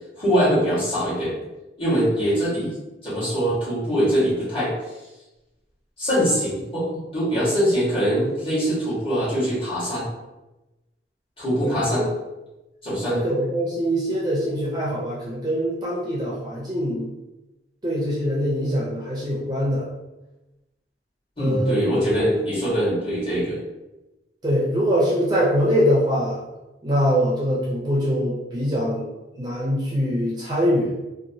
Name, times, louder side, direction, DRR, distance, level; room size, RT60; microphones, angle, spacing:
voice 1, 0.2-1.4 1.8-2.7 3.0-4.7 6.0-10.1 11.4-12.0 12.8-13.1 21.4-23.6, equal, 30° left, -9 dB, 1.3 m, -23 dB
voice 2, 11.6-12.1 13.1-17.1 17.8-19.9 21.4-22.1 24.4-26.4 26.8-29.1 29.3-30.9, equal, 25° right, -6 dB, 0.5 m, -23 dB
2.8 x 2.2 x 2.7 m, 1.0 s
head